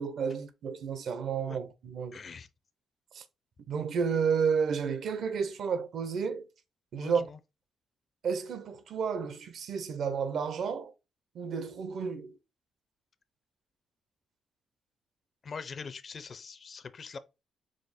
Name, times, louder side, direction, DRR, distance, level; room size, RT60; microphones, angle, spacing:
voice 1, 0.0-2.2 3.1-3.2 3.7-6.5 6.9-7.3 8.2-10.9 11.3-12.4, right 6 dB, 70° right, 0.7 m, -31 dB
voice 2, 2.1-2.5 7.0-7.4 15.4-17.2, left 5 dB, 50° left, 0.5 m, -43 dB
5.0 x 2.1 x 4.1 m
cardioid pair, 80°, 0 cm